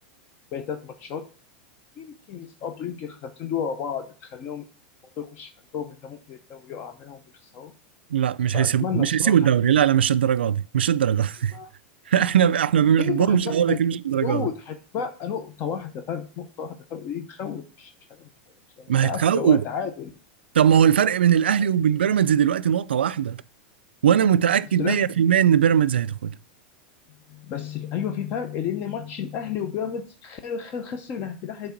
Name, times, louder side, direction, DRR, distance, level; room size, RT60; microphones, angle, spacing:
voice 1, 0.5-1.3 2.0-4.7 5.2-7.2 7.5-7.7 8.5-9.5 11.5-11.7 12.9-13.8 14.2-17.9 18.2-18.3 18.8-20.1 24.8-25.0 27.3-31.7, left 7 dB, 40° left, 0.7 m, -32 dB
voice 2, 8.1-11.6 12.1-14.5 18.9-19.6 20.5-23.4 24.0-26.4, right 9 dB, 90° right, 0.3 m, -20 dB
8.1 x 3.3 x 5.8 m
hypercardioid pair, 110°, 6 cm